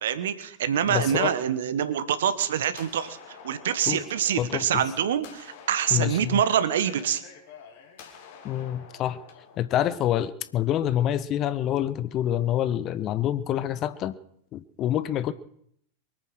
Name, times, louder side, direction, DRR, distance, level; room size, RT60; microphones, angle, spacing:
voice 1, 0.0-7.2, right 9 dB, 60° right, 13 dB, 1.3 m, -25 dB
voice 2, 0.9-1.3 3.9-4.0 4.4-4.8 5.9-6.4 8.4-9.2 9.6-14.2 14.5-15.3, left 11 dB, 35° left, 15 dB, 0.8 m, -27 dB
sound 1, 1.8-9.6, left 6 dB, 50° left, 3.1 m, -49 dB
23.5 x 8.9 x 6.5 m, 0.71 s
figure-of-eight pair, 90°, 0 cm